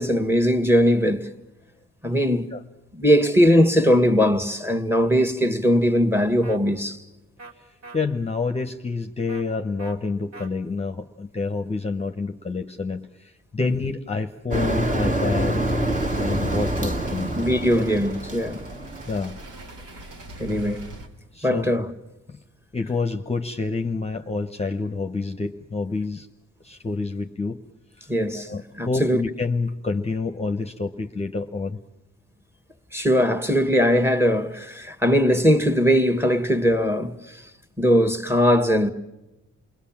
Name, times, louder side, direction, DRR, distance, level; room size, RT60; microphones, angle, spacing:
voice 1, 0.0-1.3 2.0-2.5 2.9-7.0 13.6-13.7 17.3-18.6 20.4-20.9 21.4-21.9 28.1-29.2 32.9-37.4 37.8-38.9, equal, 10° right, 1.8 m, -20 dB
sound 1, 6.4-6.6 7.4-7.5 7.8-8.0 9.3-9.4 9.8-10.0 10.3-10.5, right 3 dB, 60° right, 3.0 m, -41 dB
voice 2, 7.6-15.6 16.2-17.3 17.7-17.8 19.1-19.4 21.3-21.7 22.3-22.4 22.7-26.3 26.6-27.6 28.3-31.8, left 4 dB, 20° left, 1.0 m, -28 dB
Motor vehicle (road), 14.5-19.5, right 1 dB, 25° right, 2.1 m, -26 dB
sound 2, 15.6-21.1, right 1 dB, 85° right, 3.2 m, -41 dB
29.0 x 21.0 x 7.3 m
cardioid pair, 105°, 30 cm